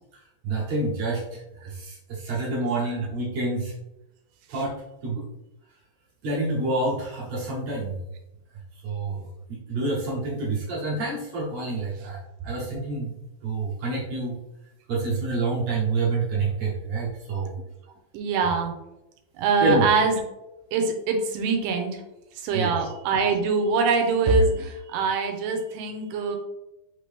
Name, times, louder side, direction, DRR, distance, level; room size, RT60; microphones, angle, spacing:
voice 1, 0.4-3.7 4.5-5.3 6.2-8.0 8.8-9.2 9.7-12.2 12.4-13.1 13.4-14.4 14.9-17.5 19.6-19.9 22.5-22.9, right 3 dB, 65° right, -6 dB, 2.1 m, -27 dB
voice 2, 18.1-18.7 19.4-20.2 20.7-22.0 22.4-26.4, right 4 dB, 90° right, 4 dB, 2.3 m, -23 dB
5.4 x 2.9 x 3.4 m, 0.92 s
omnidirectional pair, 3.7 m